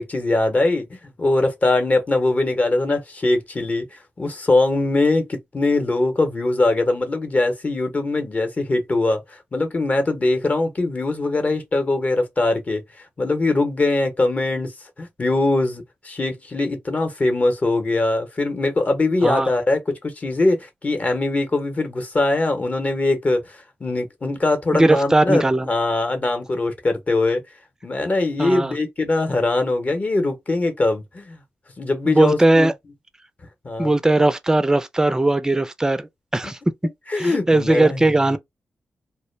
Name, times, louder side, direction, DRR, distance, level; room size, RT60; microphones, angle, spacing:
voice 1, 0.0-9.2 9.5-12.8 13.2-14.7 15.0-27.4 27.8-31.4 31.8-32.7 33.6-33.9 36.4-36.5 37.1-38.4, left 2 dB, 35° left, 0.8 m, -22 dB
voice 2, 24.8-25.7 28.4-28.7 32.1-32.7 33.8-36.6 37.2-38.4, right 2 dB, 15° right, 0.4 m, -18 dB
2.2 x 2.0 x 3.1 m
cardioid pair, 65°, 4 cm